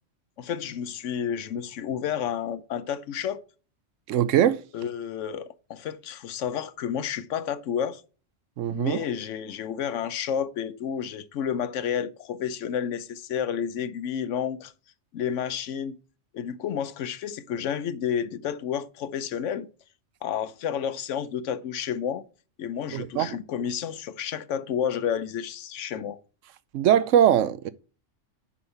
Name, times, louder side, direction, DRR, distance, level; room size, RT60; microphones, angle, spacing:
voice 1, 0.4-3.4 4.7-8.0 8.7-14.7 15.1-15.9 16.3-19.7 20.2-22.2 22.6-26.2, left 8 dB, 80° left, 1.0 m, -30 dB
voice 2, 4.1-4.6 8.6-9.0 22.9-23.4 26.7-27.7, right 10 dB, 85° right, 1.0 m, -21 dB
8.8 x 5.6 x 4.4 m
omnidirectional pair, 1.3 m